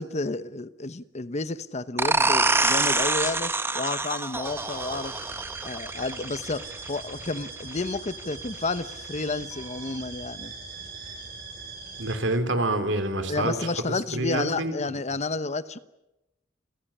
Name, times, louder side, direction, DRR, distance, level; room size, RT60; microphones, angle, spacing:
voice 1, 0.0-5.1 5.6-10.5 13.3-15.8, left 3 dB, 35° left, 14 dB, 0.9 m, -31 dB
sound 1, 2.0-7.4, right 3 dB, 15° right, 1.1 m, -26 dB
sound 2, 4.4-12.1, right 4 dB, 50° right, 7.4 m, -41 dB
voice 2, 12.0-13.7 14.1-14.7, right 2 dB, 70° right, 9 dB, 3.3 m, -27 dB
28.5 x 16.0 x 10.0 m, 0.95 s
head